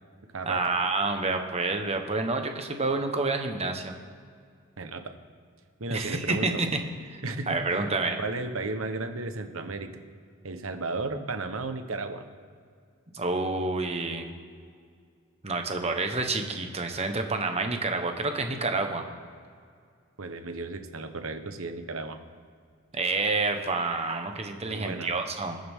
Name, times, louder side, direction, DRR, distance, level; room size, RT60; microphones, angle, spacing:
voice 1, 0.4-3.9 5.9-6.7 7.1-8.2 13.1-14.3 15.4-19.0 22.9-25.6, right 3 dB, 30° right, 5 dB, 1.1 m, -28 dB
voice 2, 5.8-6.6 7.2-7.9 8.2-9.9 10.4-12.2 20.2-22.2 24.6-25.1, right 3 dB, 75° right, 8 dB, 1.0 m, -34 dB
21.0 x 7.8 x 3.6 m, 2.1 s
head